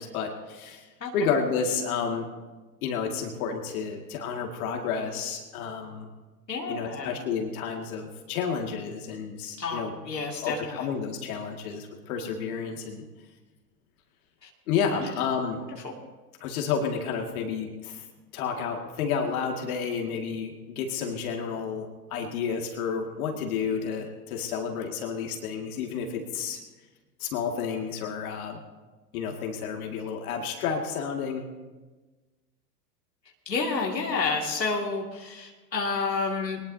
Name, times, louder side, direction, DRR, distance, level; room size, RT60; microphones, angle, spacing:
voice 1, 0.0-0.9 1.1-2.3 2.8-6.1 6.7-9.9 10.4-13.0 14.7-15.6 16.4-18.0 18.3-26.6 27.2-28.6 29.1-31.4, left 6 dB, 60° left, 2 dB, 2.3 m, -31 dB
voice 2, 6.5-7.2 9.6-10.9 14.4-14.5 15.0-15.1 15.8-15.9 33.5-36.6, left 4 dB, 85° left, 0 dB, 2.4 m, -30 dB
22.5 x 19.5 x 2.8 m, 1.2 s
figure-of-eight pair, 90°, 48 cm